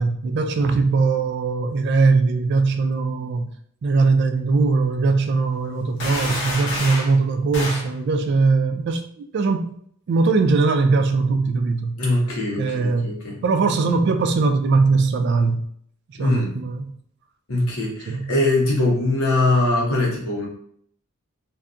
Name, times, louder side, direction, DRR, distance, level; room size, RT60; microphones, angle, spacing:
voice 1, 0.0-3.5 3.8-9.7 10.1-12.0 12.6-13.1 13.4-15.7 16.2-16.9 18.1-18.3, right 4 dB, 50° right, 0.3 m, -20 dB
sound 1, 6.0-7.2 7.5-7.9, left 2 dB, 60° left, 0.7 m, -28 dB
voice 2, 12.0-13.4 16.2-16.6 17.5-20.5, left 2 dB, 90° left, 0.9 m, -22 dB
2.7 x 2.3 x 2.4 m
head